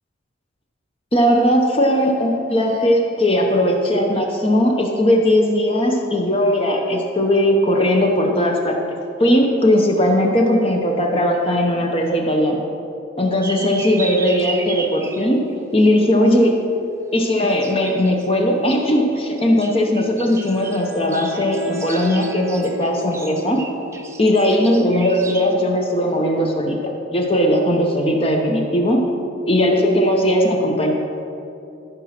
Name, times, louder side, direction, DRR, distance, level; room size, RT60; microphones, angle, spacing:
voice 1, 1.1-8.8 9.2-12.6 13.2-15.4 15.7-16.5 17.1-23.6 24.2-26.8 27.1-29.0 29.5-30.9, equal, 25° left, 1 dB, 0.8 m, -18 dB
sound 1, 13.4-15.3 17.2-18.3 19.1-25.5, right 3 dB, 15° right, 0.5 m, -34 dB
Wind instrument woodwind instrument, 19.7-24.7, left 3 dB, 45° right, 1.3 m, -36 dB
14.0 x 5.3 x 5.9 m, 2.7 s
head